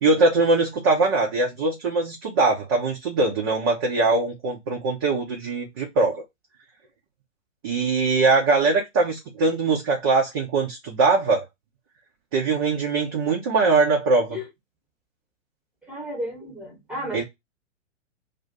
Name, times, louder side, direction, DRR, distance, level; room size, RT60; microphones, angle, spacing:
voice 1, 0.0-6.2 7.6-11.4 12.3-14.4 17.1-17.2, right 3 dB, 20° right, 0.4 m, -22 dB
voice 2, 15.8-17.2, equal, ahead, 1.0 m, -33 dB
2.4 x 2.4 x 3.9 m
figure-of-eight pair, 115°, 38 cm